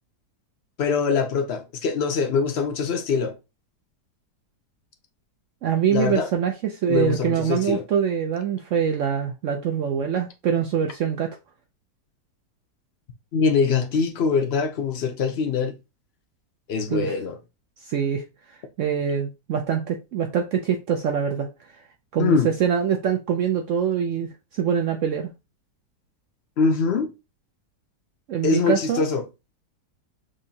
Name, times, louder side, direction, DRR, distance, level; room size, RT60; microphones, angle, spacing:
voice 1, 0.8-3.3 5.9-6.3 6.9-7.8 13.3-15.7 16.7-17.3 22.2-22.5 26.6-27.1 28.4-29.2, left 5 dB, 60° left, 0.6 m, -23 dB
voice 2, 5.6-11.4 16.9-17.1 17.8-18.2 18.8-21.5 22.1-25.3 28.3-29.0, right 7 dB, 70° right, 0.7 m, -24 dB
6.4 x 2.6 x 2.8 m
omnidirectional pair, 1.8 m